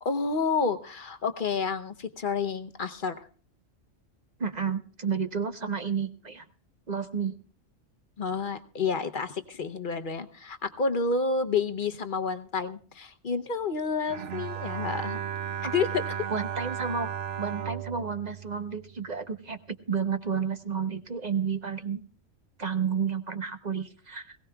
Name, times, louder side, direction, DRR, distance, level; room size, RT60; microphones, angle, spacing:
voice 1, 0.0-3.2 8.2-15.2 15.7-16.0, left 4 dB, 45° left, 9 dB, 0.8 m, -29 dB
voice 2, 4.4-6.5 6.9-7.3 15.6-15.7 16.3-17.1 17.4-22.0 22.6-24.4, right 6 dB, 35° right, 8 dB, 0.9 m, -31 dB
Bowed string instrument, 14.1-19.4, right 9 dB, 65° right, 1.1 m, -35 dB
21.0 x 17.0 x 2.3 m, 0.43 s
omnidirectional pair, 1.4 m